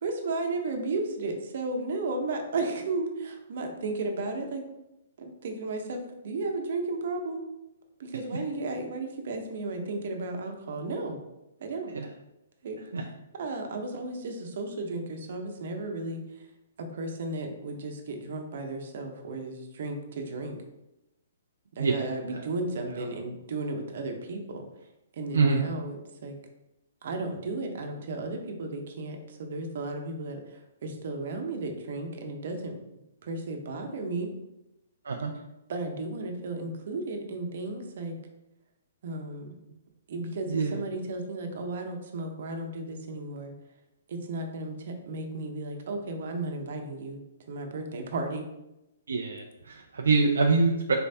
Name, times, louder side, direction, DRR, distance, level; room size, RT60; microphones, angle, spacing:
voice 1, 0.0-4.6 5.2-7.4 8.0-11.2 11.6-12.0 12.6-12.8 13.3-16.4 16.8-20.6 21.7-24.6 25.1-26.0 26.2-26.4 27.0-32.7 33.2-34.3 35.7-38.2 39.0-39.6 40.1-43.5 44.1-48.5, right 2 dB, 60° right, 4 dB, 0.8 m, -34 dB
voice 2, 21.8-22.5 22.8-23.1 25.3-25.6 35.0-35.3 40.5-40.8 49.1-50.9, right 4 dB, 85° right, 2 dB, 0.4 m, -26 dB
4.3 x 3.3 x 2.7 m, 0.91 s
hypercardioid pair, 145°, 0 cm